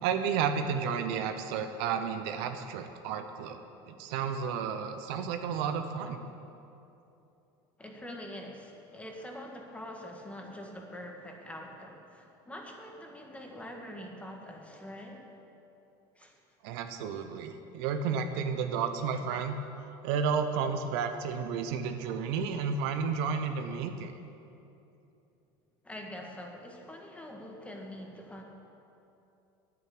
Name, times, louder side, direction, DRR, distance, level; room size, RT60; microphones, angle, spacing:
voice 1, 0.0-3.6 3.9-6.2 16.6-19.6 20.0-24.1, right 6 dB, 75° right, 7 dB, 1.0 m, -32 dB
voice 2, 7.8-15.3 16.2-16.3 25.8-28.4, left 1 dB, 10° left, 1 dB, 1.8 m, -44 dB
9.6 x 9.1 x 8.6 m, 2.8 s
supercardioid pair, 120°, 13 cm